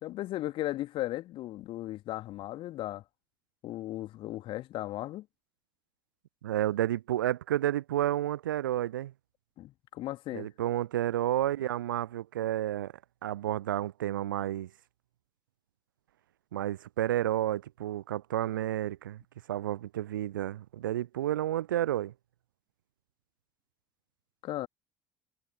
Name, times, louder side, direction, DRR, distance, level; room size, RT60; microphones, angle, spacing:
voice 1, 0.0-3.0 3.6-5.3 9.6-10.5 24.4-24.7, left 15 dB, 50° left, 2.5 m, -36 dB
voice 2, 6.4-9.1 10.3-12.9 13.2-14.7 16.5-19.2 19.5-22.1, right 13 dB, 75° right, 0.5 m, -31 dB
figure-of-eight pair, 55°, 11 cm